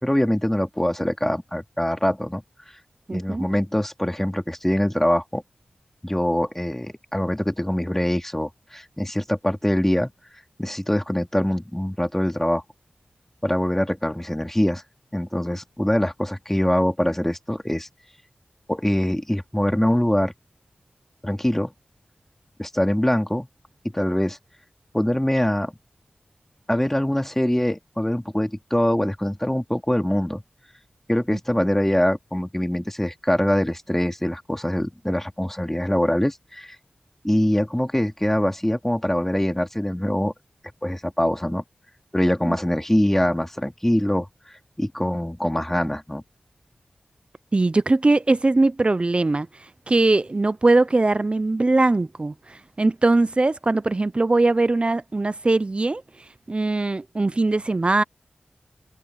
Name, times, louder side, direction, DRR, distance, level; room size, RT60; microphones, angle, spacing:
voice 1, 0.0-2.4 3.1-5.4 6.0-10.1 10.6-12.6 13.4-14.8 15.1-17.9 18.7-20.3 21.2-21.7 22.6-23.5 23.9-24.4 24.9-25.7 26.7-30.4 31.1-36.8 37.2-40.3 40.8-41.6 42.1-46.2, left 1 dB, 10° left, 3.0 m, -23 dB
voice 2, 3.1-3.5 31.3-31.4 42.5-42.6 47.5-49.5 49.9-56.0 56.5-58.0, right 2 dB, 40° right, 0.6 m, -21 dB
cardioid pair, 50°, 3 cm